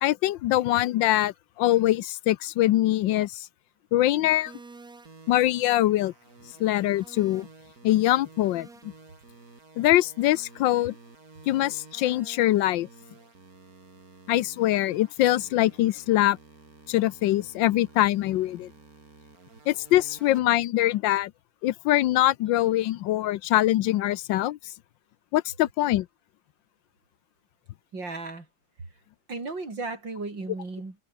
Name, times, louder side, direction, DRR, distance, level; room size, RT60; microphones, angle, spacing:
voice 1, 0.0-3.5 3.9-4.5 5.3-6.1 6.6-7.5 7.8-8.7 9.8-10.9 11.5-12.9 14.3-16.4 16.9-18.7 19.7-21.3 21.6-24.6 25.3-26.1, left 14 dB, 80° left, 1.4 m, -23 dB
sound 1, 4.5-20.4, right 3 dB, 50° right, 4.0 m, -51 dB
voice 2, 27.9-28.5 28.8-28.9 29.3-31.0, right 3 dB, 75° right, 5.8 m, -35 dB
omnidirectional pair, 2.0 m